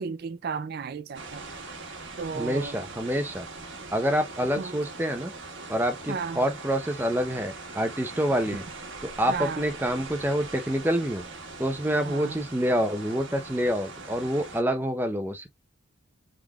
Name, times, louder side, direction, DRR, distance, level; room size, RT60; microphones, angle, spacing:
voice 1, 0.0-1.5 2.2-2.8 4.6-4.8 6.1-6.5 9.3-9.6 12.0-12.4, right 5 dB, 50° right, 0.3 m, -34 dB
sound 1, 1.1-14.6, right 3 dB, 65° right, 1.3 m, -41 dB
voice 2, 2.3-3.5 3.9-5.3 5.7-8.6 9.2-11.2 11.6-15.5, equal, 10° right, 0.6 m, -27 dB
3.7 x 3.3 x 2.3 m
head